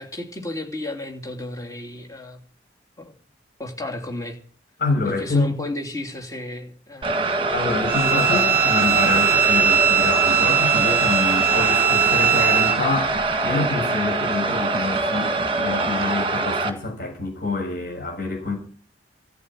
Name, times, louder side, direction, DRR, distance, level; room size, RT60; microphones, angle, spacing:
voice 1, 0.0-2.4 3.0-3.1 3.6-4.4 5.0-7.3 8.3-8.6, left 2 dB, 20° left, 3.1 m, -33 dB
voice 2, 4.8-5.5 7.5-18.6, left 3 dB, 50° left, 6.8 m, -26 dB
sound 1, 7.0-16.7, right 3 dB, 30° right, 1.7 m, -24 dB
Bowed string instrument, 7.9-12.8, right 7 dB, 10° right, 1.9 m, -19 dB
14.0 x 9.6 x 7.7 m
head